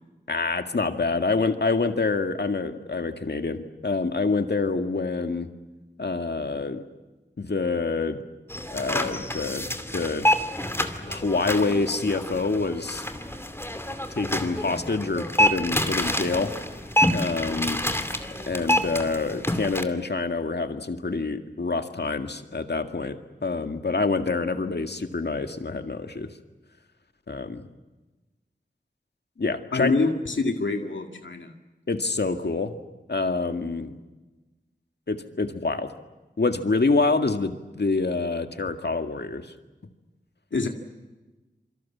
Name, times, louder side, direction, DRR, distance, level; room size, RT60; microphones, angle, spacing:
voice 1, 0.3-5.5 6.0-6.9 7.4-8.2 8.7-10.3 11.0-13.0 14.2-16.5 17.1-17.8 18.5-26.3 27.3-27.7 29.4-29.9 31.9-32.8 33.1-34.0 35.1-35.9 36.4-39.5, left 3 dB, 60° left, 7 dB, 2.1 m, -26 dB
sound 1, 8.5-19.8, equal, 10° left, 2.5 m, -27 dB
voice 2, 29.7-31.5 40.5-40.7, left 3 dB, 85° left, 4 dB, 2.2 m, -25 dB
27.5 x 24.5 x 7.4 m, 1.1 s
wide cardioid pair, 55°, 19 cm